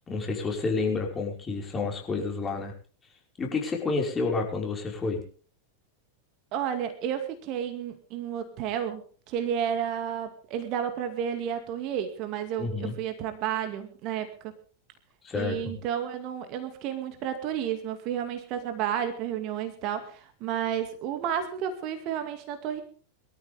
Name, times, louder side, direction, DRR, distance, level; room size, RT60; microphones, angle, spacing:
voice 1, 0.0-2.7 3.4-5.2 12.6-12.9 15.2-15.8, left 4 dB, 20° left, 0 dB, 5.4 m, -29 dB
voice 2, 6.5-9.0 9.3-14.5 15.3-22.8, right 9 dB, 40° right, 8 dB, 2.3 m, -31 dB
23.5 x 13.5 x 3.6 m, 0.41 s
figure-of-eight pair, 90°, 0 cm